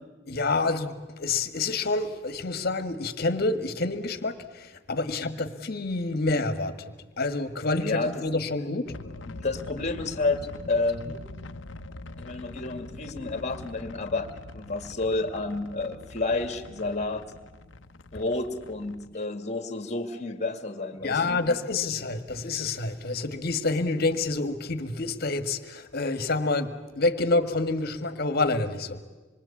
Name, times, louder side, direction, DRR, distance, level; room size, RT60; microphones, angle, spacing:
voice 1, 0.3-6.7 7.2-8.9 11.1-11.2 21.0-29.0, left 3 dB, 55° left, 1.7 m, -28 dB
voice 2, 7.8-8.2 9.3-11.2 12.2-14.3 14.5-17.3 18.1-21.4, left 3 dB, 40° left, 2.2 m, -30 dB
sound 1, 8.9-19.1, left 2 dB, 70° left, 0.9 m, -43 dB
26.5 x 22.5 x 8.5 m
head